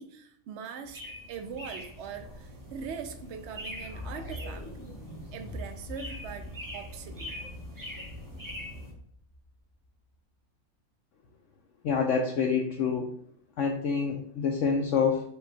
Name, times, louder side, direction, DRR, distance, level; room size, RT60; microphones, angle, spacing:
voice 1, 0.0-4.7 5.3-7.3, right 6 dB, 65° right, 7 dB, 0.7 m, -41 dB
sound 1, 0.8-8.9, left 1 dB, 15° right, 0.8 m, -43 dB
sound 2, 3.8-9.9, left 1 dB, 35° left, 0.4 m, -44 dB
voice 2, 11.8-13.0 13.6-15.2, left 5 dB, 65° left, 1 dB, 0.8 m, -27 dB
5.5 x 2.3 x 3.9 m, 0.66 s
omnidirectional pair, 1.6 m